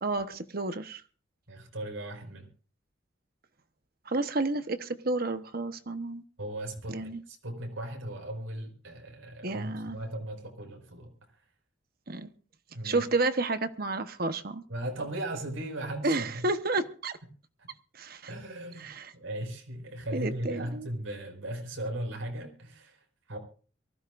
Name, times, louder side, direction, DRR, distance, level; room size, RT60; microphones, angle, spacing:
voice 1, 0.0-1.0 4.1-6.2 6.9-7.2 9.4-10.0 12.1-12.3 12.8-14.6 16.0-17.2 17.9-18.2 18.8-19.1 20.1-20.9, right 2 dB, 50° right, 1.1 m, -31 dB
voice 2, 1.5-2.5 6.4-11.1 12.7-13.1 14.7-16.4 18.3-23.4, right 1 dB, 85° right, 5.4 m, -37 dB
23.5 x 16.0 x 2.6 m
head